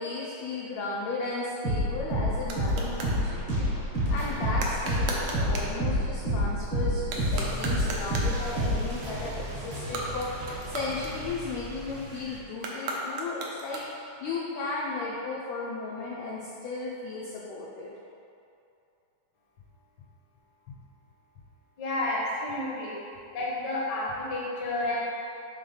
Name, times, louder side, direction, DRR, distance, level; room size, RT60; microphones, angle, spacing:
voice 1, 0.0-3.7 4.1-17.9, left 3 dB, 85° left, -5 dB, 1.5 m, -35 dB
sound 1, 1.4-3.2 4.5-5.8 7.0-8.4 9.8-11.6 12.5-14.2, right 2 dB, 80° right, 1.5 m, -37 dB
sound 2, 1.6-11.3, equal, 45° right, 1.8 m, -29 dB
sound 3, 7.1-12.4, equal, 65° right, 1.3 m, -42 dB
voice 2, 21.8-22.9 23.3-25.0, left 2 dB, 70° left, -5 dB, 1.0 m, -30 dB
5.8 x 3.6 x 5.5 m, 2.7 s
omnidirectional pair, 3.9 m